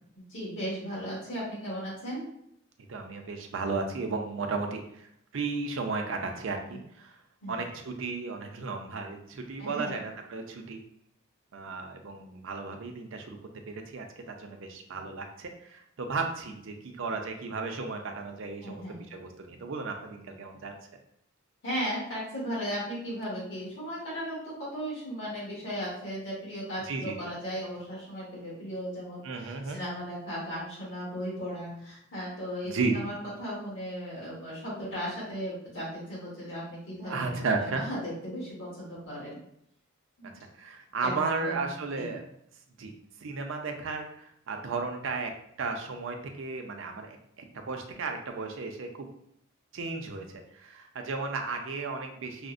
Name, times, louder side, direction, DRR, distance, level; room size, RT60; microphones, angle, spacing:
voice 1, 0.1-2.2 6.7-6.8 7.4-7.6 9.6-9.9 18.6-19.0 21.6-37.3 37.6-39.4 40.2-40.3 41.0-41.7 42.0-42.2, equal, 60° left, -8 dB, 1.5 m, -36 dB
voice 2, 2.9-7.2 7.5-10.8 11.5-13.4 13.7-20.7 26.8-27.2 29.2-29.8 32.7-33.1 37.1-37.8 40.2-42.2 42.8-42.9 43.2-45.3 45.6-49.1 49.7-50.3 50.5-52.5, right 4 dB, 60° right, 4 dB, 0.5 m, -34 dB
4.9 x 2.0 x 2.5 m, 0.73 s
head